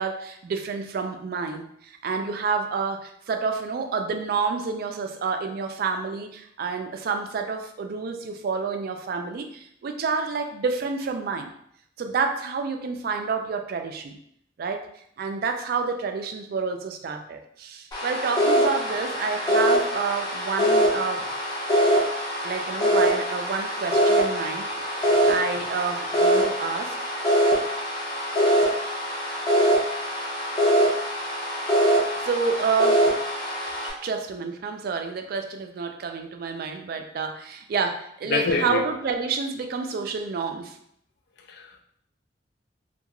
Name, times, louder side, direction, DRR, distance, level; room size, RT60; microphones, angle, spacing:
voice 1, 0.0-11.5 12.0-14.2 14.6-14.9 15.2-21.3 22.4-27.1 32.2-33.1 33.8-40.8, right 5 dB, 55° right, 5 dB, 0.3 m, -29 dB
sound 1, 17.9-33.9, equal, 20° left, 0.6 m, -23 dB
voice 2, 38.3-38.8 41.5-41.8, left 4 dB, 60° left, 4 dB, 0.3 m, -26 dB
2.3 x 2.2 x 2.8 m, 0.69 s
head